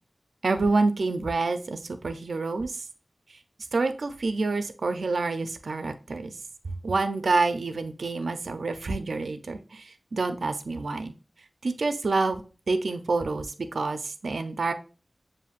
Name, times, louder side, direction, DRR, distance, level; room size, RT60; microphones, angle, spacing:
voice 1, 0.4-2.8 3.7-6.4 6.8-11.1 11.6-12.4 12.7-14.7, right 3 dB, 85° right, 8 dB, 0.4 m, -27 dB
7.1 x 2.5 x 2.4 m, 0.36 s
wide cardioid pair, 80°, 0 cm